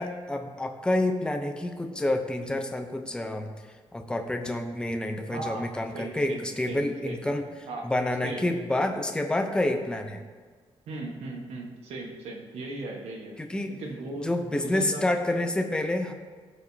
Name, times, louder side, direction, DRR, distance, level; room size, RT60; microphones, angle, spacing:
voice 1, 0.0-3.5 3.9-7.4 7.8-10.2 13.4-13.8 14.2-16.1, left 1 dB, 10° left, 4 dB, 0.7 m, -28 dB
voice 2, 5.3-5.6 5.9-7.2 7.7-7.9 8.2-8.4 10.9-13.4 13.7-15.0, right 2 dB, 85° right, 1 dB, 1.4 m, -37 dB
15.0 x 5.1 x 2.8 m, 1.5 s
cardioid pair, 125°, 10 cm